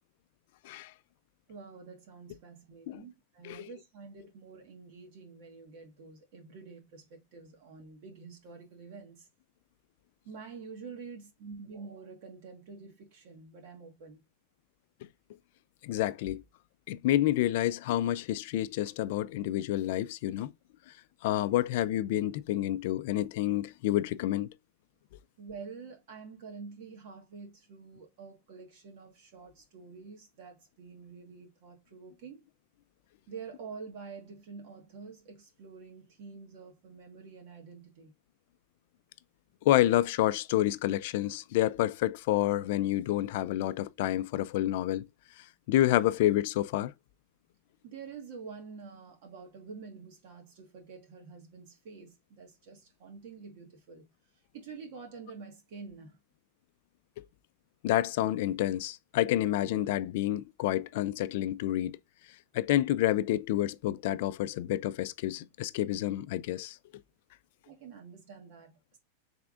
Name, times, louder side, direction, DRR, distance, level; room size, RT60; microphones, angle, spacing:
voice 1, 1.5-9.3 10.2-14.2 25.4-32.4 33.3-38.1 47.8-54.1 54.5-56.2 67.7-69.0, right 5 dB, 55° right, 1.4 m, -47 dB
voice 2, 15.8-16.4 16.9-20.5 21.2-24.5 39.6-45.0 45.7-46.9 57.8-62.0 62.5-66.8, left 14 dB, 55° left, 0.4 m, -29 dB
3.6 x 3.4 x 3.6 m
supercardioid pair, 160°, 0 cm